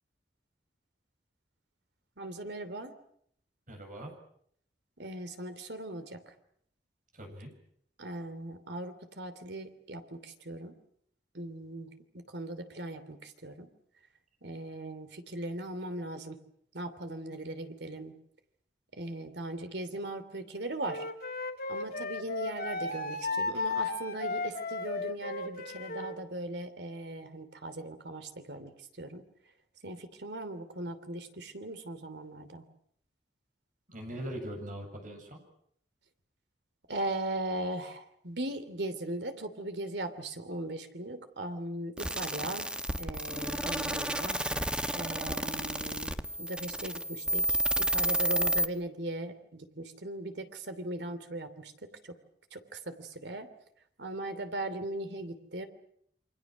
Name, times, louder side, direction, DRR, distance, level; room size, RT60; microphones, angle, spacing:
voice 1, 2.2-3.0 5.0-6.2 8.0-10.7 11.3-13.7 14.4-16.4 16.7-18.1 18.9-21.0 21.7-29.2 29.8-32.6 36.9-42.7 43.0-44.4 44.9-51.7 52.5-53.5 54.0-55.7, right 1 dB, 75° right, 9 dB, 3.0 m, -39 dB
voice 2, 3.7-4.1 7.1-7.5 33.9-35.4, right 1 dB, 50° right, 3 dB, 7.6 m, -41 dB
Wind instrument woodwind instrument, 20.9-26.2, left 3 dB, 55° left, 2.5 m, -35 dB
sound 1, 42.0-48.7, equal, 5° right, 1.3 m, -31 dB
28.5 x 25.5 x 6.3 m, 0.68 s
head